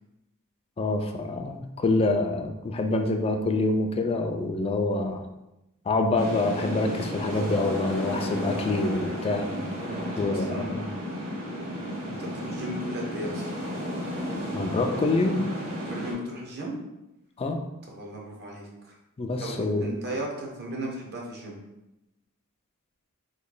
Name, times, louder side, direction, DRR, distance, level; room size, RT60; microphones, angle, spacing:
voice 1, 0.8-5.2 5.9-9.5 10.2-10.8 14.5-15.4 17.4-17.6 19.2-19.9, left 2 dB, 25° left, 5 dB, 0.3 m, -26 dB
sound 1, 6.1-16.1, equal, 85° right, 1.2 m, -33 dB
voice 2, 9.8-11.1 12.0-13.5 15.9-16.8 17.9-18.7 19.4-21.6, right 1 dB, 50° right, -1 dB, 0.8 m, -36 dB
3.1 x 2.3 x 3.8 m, 0.92 s
head